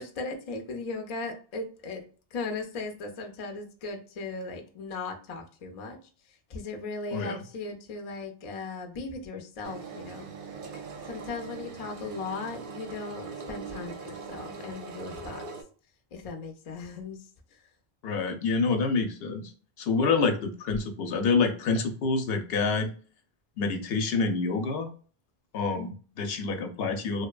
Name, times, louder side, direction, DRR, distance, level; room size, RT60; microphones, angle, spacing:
voice 1, 0.0-2.0 2.3-6.0 6.5-10.3 11.1-15.4 16.1-17.2, left 3 dB, 50° left, 4 dB, 0.4 m, -37 dB
Engine, 9.6-15.6, right 5 dB, 60° right, 0.7 m, -41 dB
voice 2, 18.0-19.5 19.8-22.9 23.6-24.9 25.5-27.3, left 4 dB, 75° left, 5 dB, 0.8 m, -27 dB
2.7 x 2.1 x 2.2 m, 0.40 s
omnidirectional pair, 1.0 m